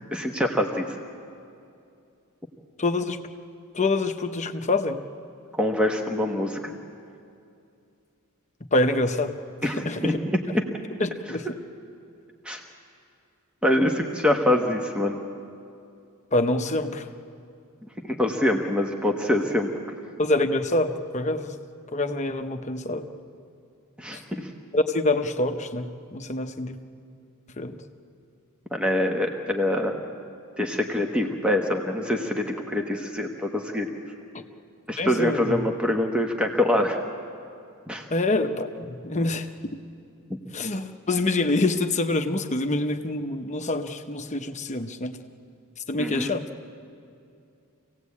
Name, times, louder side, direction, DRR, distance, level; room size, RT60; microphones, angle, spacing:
voice 1, 0.1-1.0 5.5-6.7 9.6-10.1 10.5-10.6 12.4-12.6 13.6-15.2 18.0-19.7 24.0-24.5 28.7-29.9 30.6-33.9 34.9-37.0 37.9-38.1 46.0-46.3, left 1 dB, 5° right, 3 dB, 1.1 m, -25 dB
voice 2, 2.8-3.2 3.7-5.0 8.7-10.2 11.0-11.5 16.3-17.1 20.2-21.5 21.9-23.1 24.1-24.2 24.7-26.8 27.6-27.8 34.3-34.4 35.0-35.7 38.1-39.5 40.5-45.2 45.9-46.4, left 2 dB, 30° left, 6 dB, 0.9 m, -26 dB
26.0 x 17.5 x 8.5 m, 2.5 s
head